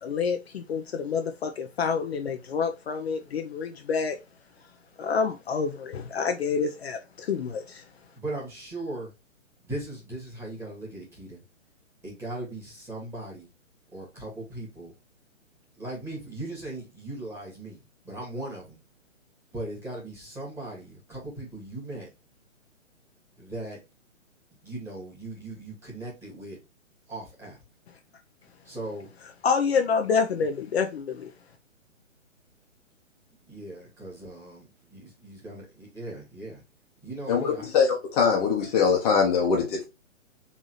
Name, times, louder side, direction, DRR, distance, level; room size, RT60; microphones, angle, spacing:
voice 1, 0.0-4.2 5.0-7.8 29.4-31.3, left 5 dB, 50° left, 0.7 m, -28 dB
voice 2, 8.2-9.1 9.6-11.4 12.0-13.5 13.9-14.9 15.8-18.8 19.5-22.1 23.4-23.8 24.6-26.6 27.1-27.6 28.7-29.1 33.5-36.6 37.0-37.7, right 2 dB, 5° right, 2.0 m, -38 dB
voice 3, 37.3-39.8, left 6 dB, 30° left, 1.1 m, -22 dB
4.1 x 3.6 x 3.1 m
hypercardioid pair, 145°, 39 cm